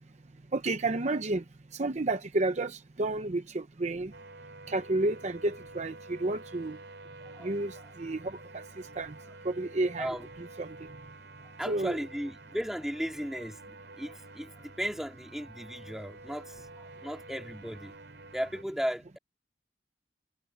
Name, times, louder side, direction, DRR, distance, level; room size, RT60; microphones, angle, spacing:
voice 1, 0.5-1.4 1.7-4.1 4.7-6.8 7.4-8.6 9.0-9.1 9.4-10.7 11.7-12.0, right 2 dB, 40° right, 0.8 m, -31 dB
sound 1, 4.1-18.6, right 2 dB, 75° right, 6.7 m, -49 dB
voice 2, 11.6-17.9 18.3-19.2, equal, ahead, 2.4 m, -36 dB
head